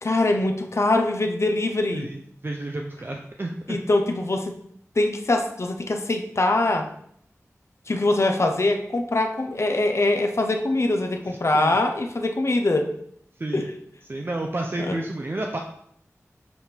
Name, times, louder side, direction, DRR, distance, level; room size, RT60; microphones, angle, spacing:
voice 1, 0.0-2.1 3.7-4.5 5.0-6.9 7.9-12.9 13.5-13.7 14.9-15.0, left 2 dB, 60° left, 5 dB, 0.7 m, -23 dB
voice 2, 2.4-3.8 11.5-11.8 13.4-13.7 14.1-15.6, right 2 dB, 40° right, 2 dB, 0.6 m, -30 dB
7.0 x 3.4 x 4.4 m, 0.69 s
wide cardioid pair, 75°, 5 cm